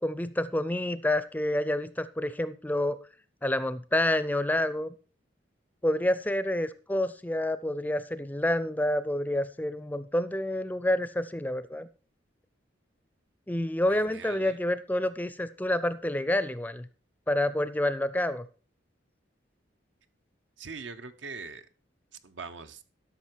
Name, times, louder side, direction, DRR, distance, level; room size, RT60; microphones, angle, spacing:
voice 1, 0.0-3.0 3.4-5.0 5.8-11.9 13.5-16.9 17.3-18.4, left 1 dB, 10° left, 0.4 m, -28 dB
voice 2, 13.9-14.6 20.6-21.7 22.2-22.8, right 4 dB, 85° right, 0.8 m, -42 dB
12.5 x 5.8 x 4.6 m
head